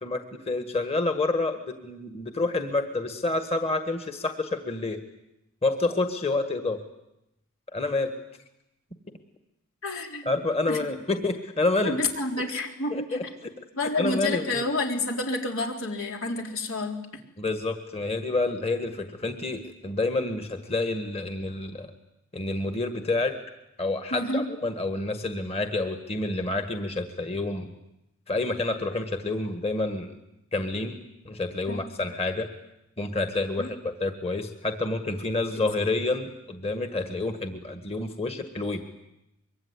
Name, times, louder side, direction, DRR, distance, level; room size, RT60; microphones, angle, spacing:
voice 1, 0.0-5.0 5.6-6.8 7.7-8.1 10.2-12.0 12.9-13.2 14.0-14.6 17.4-21.9 22.3-23.4 23.8-27.7 28.3-30.1 30.5-31.0 31.2-32.5 33.0-38.8, left 2 dB, 30° left, 7 dB, 1.7 m, -28 dB
voice 2, 9.8-10.4 10.7-11.0 11.8-13.3 13.7-17.1 24.1-24.4 31.7-31.9 33.6-33.7, left 2 dB, 80° left, 2 dB, 4.1 m, -29 dB
24.5 x 23.5 x 9.7 m, 0.87 s
head